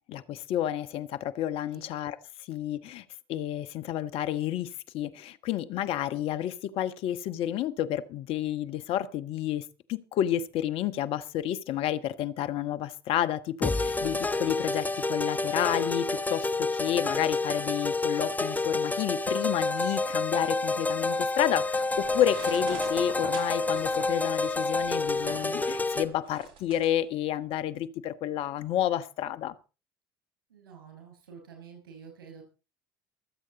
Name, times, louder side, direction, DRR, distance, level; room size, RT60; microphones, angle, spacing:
voice 1, 0.1-2.2 2.5-29.5, left 11 dB, 55° left, 1.2 m, -30 dB
sound 1, 13.6-26.1, left 3 dB, 15° left, 1.2 m, -29 dB
sound 2, 21.9-26.9, right 6 dB, 50° right, 3.9 m, -44 dB
voice 2, 30.5-32.4, right 6 dB, 80° right, 5.6 m, -49 dB
24.0 x 8.3 x 4.0 m
hypercardioid pair, 65°, 11 cm